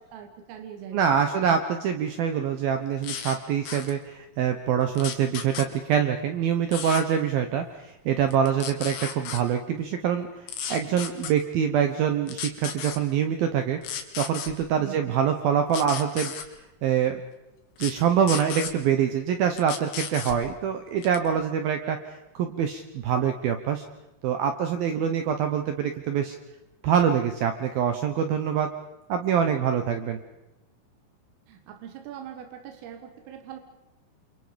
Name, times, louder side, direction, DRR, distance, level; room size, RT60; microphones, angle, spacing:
voice 1, 0.0-1.6 14.8-15.2 31.5-33.6, right 9 dB, 85° right, 5 dB, 4.3 m, -42 dB
voice 2, 0.9-13.8 14.2-16.3 16.8-17.2 17.8-23.8 24.2-26.4 26.8-28.7 29.1-30.2, right 8 dB, 70° right, 7 dB, 2.3 m, -25 dB
sound 1, 3.0-3.4 3.7-3.9 5.0-5.7 6.7-7.0 8.3-9.4 10.5-11.3 12.3-13.0 13.8-14.5 15.7-16.5 17.8-17.9 18.3-18.7 19.6-20.4 21.0-21.3, left 8 dB, 80° left, 4.5 m, -34 dB
29.0 x 27.0 x 5.2 m, 0.96 s
omnidirectional pair, 5.7 m